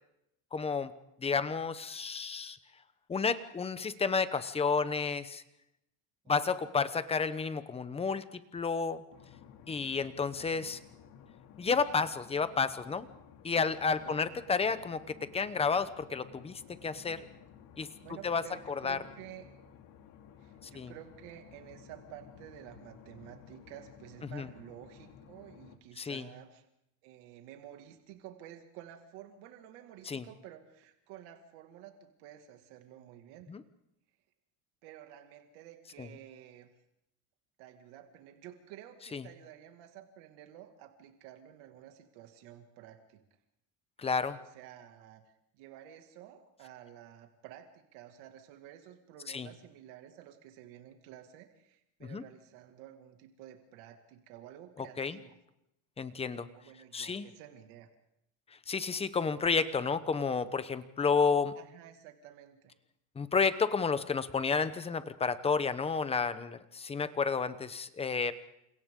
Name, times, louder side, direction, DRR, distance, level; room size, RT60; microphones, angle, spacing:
voice 1, 0.5-0.9 1.2-2.6 3.1-5.4 6.3-9.0 9.7-10.8 11.6-13.1 13.4-17.3 17.8-17.9 18.2-18.4 18.8-19.0 20.7-20.9 24.2-24.5 26.0-26.3 30.1-30.3 33.5-33.6 36.0-36.1 39.1-39.2 44.0-44.4 49.3-49.5 52.0-52.2 54.8-55.2 56.0-56.5 56.9-57.3 58.7-61.5 63.2-68.3, left 5 dB, 15° left, 13 dB, 0.8 m, -31 dB
voice 2, 6.2-6.7 10.2-10.7 13.7-14.7 18.0-19.5 20.4-26.6 27.0-33.5 34.8-36.7 37.6-43.2 44.3-45.2 45.5-55.4 56.5-57.9 61.5-62.7, right 11 dB, 85° right, 5 dB, 2.2 m, -52 dB
sound 1, 9.1-25.8, left 8 dB, 60° left, 2.7 m, -55 dB
29.5 x 28.0 x 3.8 m, 0.81 s
cardioid pair, 165°, 39 cm